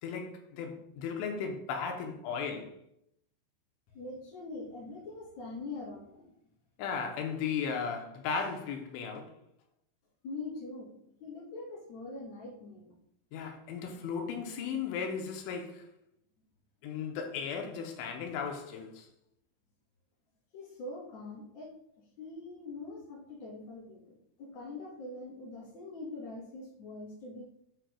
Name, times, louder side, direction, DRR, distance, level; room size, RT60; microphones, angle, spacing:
voice 1, 0.0-2.7 6.8-9.3 13.3-15.9 16.8-19.1, left 6 dB, 90° left, 3.1 m, -36 dB
voice 2, 3.9-6.3 10.2-10.9 11.2-12.9 20.5-21.8 22.2-27.4, left 2 dB, 45° left, 3.1 m, -43 dB
7.5 x 6.9 x 2.2 m
omnidirectional pair, 5.5 m